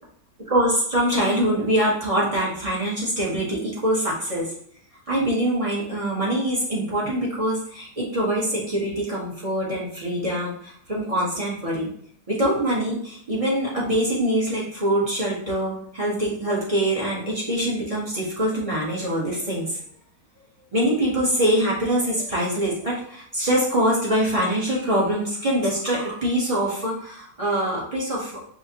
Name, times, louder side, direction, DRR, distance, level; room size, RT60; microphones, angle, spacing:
voice 1, 0.5-4.5 5.1-11.9 12.3-19.8 20.7-28.4, right 1 dB, 30° right, -6 dB, 0.7 m, -24 dB
5.0 x 2.1 x 2.7 m, 0.62 s
omnidirectional pair, 1.7 m